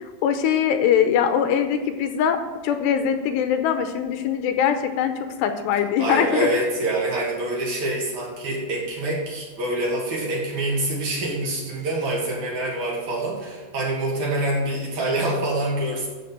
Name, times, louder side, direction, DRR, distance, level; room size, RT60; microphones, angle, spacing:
voice 1, 0.2-5.1 5.4-6.5, left 8 dB, 85° left, 8 dB, 2.8 m, -22 dB
voice 2, 6.0-16.1, right 1 dB, 50° right, -4 dB, 3.4 m, -26 dB
14.0 x 5.3 x 7.5 m, 1.3 s
omnidirectional pair, 4.9 m